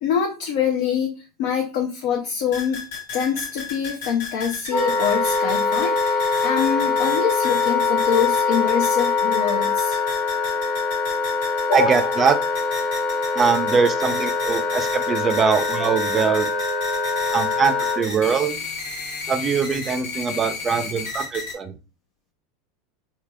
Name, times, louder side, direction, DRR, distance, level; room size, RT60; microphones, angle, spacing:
voice 1, 0.0-2.8 3.1-10.0 11.7-12.1, left 7 dB, 65° left, 2 dB, 0.5 m, -25 dB
sound 1, 2.5-21.5, left 3 dB, 80° left, 1.1 m, -34 dB
Wind instrument woodwind instrument, 4.7-18.1, left 4 dB, 40° left, 1.1 m, -23 dB
voice 2, 11.7-12.4 13.4-16.5 17.3-18.6 19.3-21.7, right 6 dB, 30° right, 10 dB, 0.4 m, -22 dB
3.3 x 2.9 x 2.3 m, 0.32 s
hypercardioid pair, 105°, 0 cm